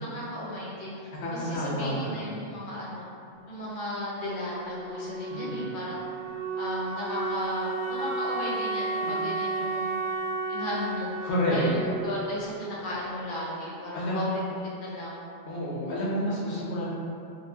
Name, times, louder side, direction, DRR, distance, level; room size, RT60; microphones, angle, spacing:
voice 1, 0.0-3.1 3.5-6.0 6.6-9.9 10.5-15.2, left 1 dB, 55° left, -6 dB, 0.7 m, -35 dB
voice 2, 1.2-2.2 5.3-5.8 9.0-9.2 11.2-11.7 13.9-14.3 15.5-16.8, equal, 85° left, -6 dB, 1.0 m, -29 dB
Wind instrument woodwind instrument, 4.5-13.2, right 3 dB, 10° right, 0.8 m, -33 dB
3.0 x 2.2 x 2.2 m, 2.6 s
omnidirectional pair, 1.1 m